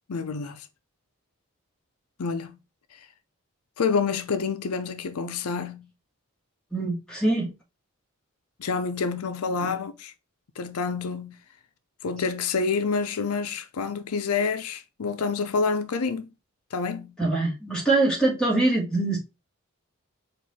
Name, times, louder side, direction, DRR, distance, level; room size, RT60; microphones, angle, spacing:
voice 1, 0.1-0.7 2.2-2.6 2.9-3.1 3.8-5.9 8.6-10.1 10.6-11.4 12.0-16.3 16.7-17.1, left 5 dB, 85° left, 0.5 m, -28 dB
voice 2, 6.7-7.5 9.6-9.7 17.2-19.2, right 2 dB, 5° left, 1.6 m, -23 dB
4.6 x 2.5 x 4.1 m
head